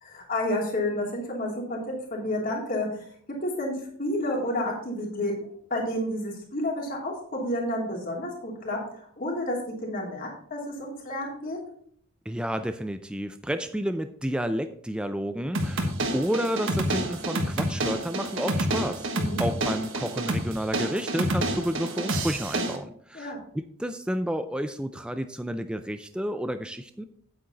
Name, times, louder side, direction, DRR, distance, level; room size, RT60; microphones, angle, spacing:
voice 1, 0.0-1.8 2.1-3.0 3.4-3.7 4.0-11.6 19.1-19.4 23.1-23.4, left 1 dB, 40° left, -1 dB, 3.0 m, -30 dB
voice 2, 12.3-19.1 19.4-27.0, equal, 5° right, 9 dB, 0.3 m, -31 dB
sound 1, 15.5-22.8, right 1 dB, 60° right, 1.5 m, -28 dB
9.1 x 8.6 x 4.0 m, 0.62 s
head